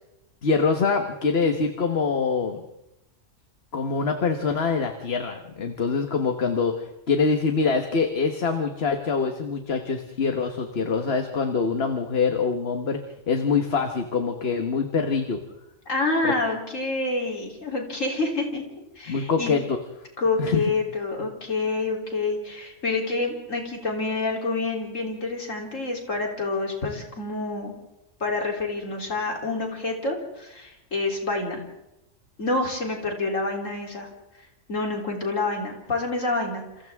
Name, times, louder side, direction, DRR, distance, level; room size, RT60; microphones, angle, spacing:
voice 1, 0.4-2.6 3.7-15.4 16.2-16.3 19.1-19.8 20.4-20.6, left 5 dB, 55° left, 5 dB, 1.5 m, -24 dB
voice 2, 15.9-18.6 19.0-19.6 20.2-27.7 28.2-31.6 32.4-34.1 34.7-36.6, left 3 dB, 90° left, 1 dB, 3.8 m, -27 dB
28.5 x 27.5 x 3.6 m, 0.90 s
omnidirectional pair, 1.3 m